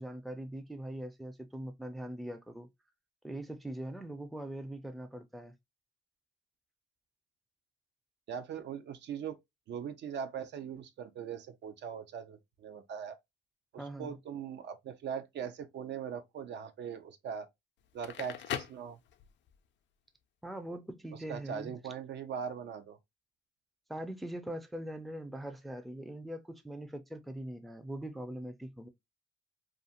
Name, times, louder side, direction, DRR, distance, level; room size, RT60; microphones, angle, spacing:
voice 1, 0.0-2.7 3.2-5.5 13.8-14.1 20.4-21.8 23.9-28.9, right 1 dB, ahead, 0.4 m, -42 dB
voice 2, 8.3-9.4 9.7-13.2 13.7-17.5 17.9-19.0 21.3-23.0, right 7 dB, 60° right, 0.5 m, -40 dB
Crackle, 17.8-19.6, left 10 dB, 65° left, 0.4 m, -40 dB
2.4 x 2.4 x 2.7 m
cardioid pair, 90°, 20 cm